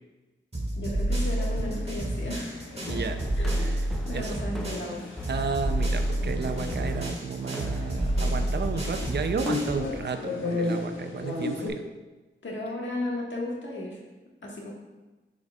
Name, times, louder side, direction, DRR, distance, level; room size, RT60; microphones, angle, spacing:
sound 1, 0.5-4.9 5.2-9.9, right 1 dB, 30° right, 2.1 m, -29 dB
voice 1, 0.8-2.5 2.9-3.0 3.3-3.8 4.0-5.0 12.4-14.0 14.4-14.7, left 1 dB, 70° left, -3 dB, 1.6 m, -34 dB
sound 2, 1.1-11.7, left 3 dB, 90° left, 1.4 m, -36 dB
sound 3, 2.7-9.6, left 1 dB, ahead, 0.7 m, -41 dB
voice 2, 2.9-3.2 3.6-4.4 5.3-11.8, right 5 dB, 60° right, 8 dB, 0.5 m, -33 dB
9.1 x 5.0 x 2.4 m, 1.2 s
cardioid pair, 55°, 20 cm